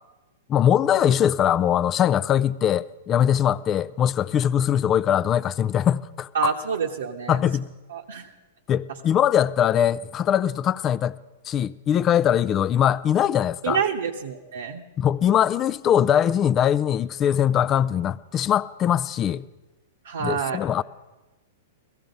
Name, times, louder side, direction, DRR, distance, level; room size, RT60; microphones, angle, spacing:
voice 1, 0.5-6.5 7.3-7.7 8.7-11.2 11.5-13.8 15.0-19.4 20.2-20.8, left 9 dB, 30° left, 0.4 m, -21 dB
voice 2, 6.3-7.4 7.9-8.3 13.6-14.8 20.0-20.6, right 6 dB, 75° right, 0.9 m, -27 dB
16.5 x 14.5 x 5.3 m
hypercardioid pair, 115°, 0 cm